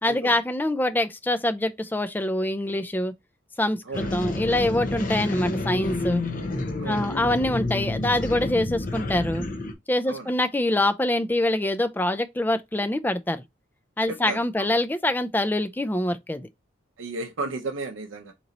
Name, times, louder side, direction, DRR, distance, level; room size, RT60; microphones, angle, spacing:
voice 1, 0.0-3.1 3.6-6.2 6.9-9.4 9.9-13.4 14.0-16.5, left 1 dB, 10° left, 0.3 m, -25 dB
sound 1, 3.9-9.7, left 2 dB, 40° left, 0.7 m, -29 dB
voice 2, 6.8-7.1 10.1-10.3 14.1-14.7 17.0-18.3, right 3 dB, 75° right, 0.6 m, -34 dB
4.1 x 3.0 x 3.8 m
head